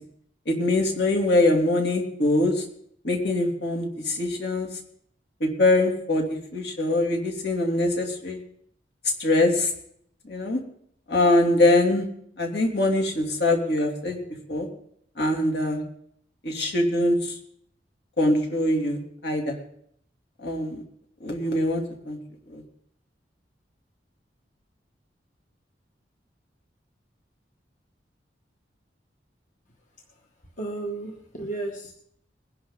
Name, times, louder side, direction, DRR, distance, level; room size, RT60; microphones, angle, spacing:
voice 1, 0.5-2.6 3.0-4.7 5.4-8.4 9.2-9.7 10.2-10.6 11.1-12.1 12.4-14.2 14.5-14.7 15.2-15.8 16.4-17.3 18.2-19.6 20.4-20.8 21.2-22.2 22.5-22.6, left 1 dB, 70° left, 1 dB, 2.9 m, -23 dB
voice 2, 30.6-31.9, right 2 dB, 45° left, 1 dB, 1.6 m, -33 dB
21.0 x 11.0 x 3.9 m, 0.67 s
head